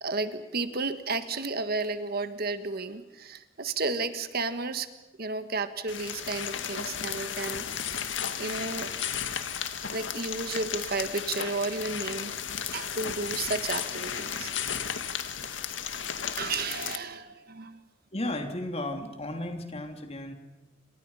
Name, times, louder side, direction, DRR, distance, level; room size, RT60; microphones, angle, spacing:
voice 1, 0.0-4.9 5.2-8.1 8.4-9.0 9.8-12.3 12.7-14.5 16.4-17.8, right 3 dB, 55° right, 10 dB, 1.5 m, -32 dB
sound 1, 5.9-17.0, left 8 dB, 80° left, 1.8 m, -34 dB
voice 2, 18.1-20.3, left 1 dB, 35° left, 4 dB, 3.1 m, -34 dB
29.0 x 26.5 x 5.7 m, 1.1 s
head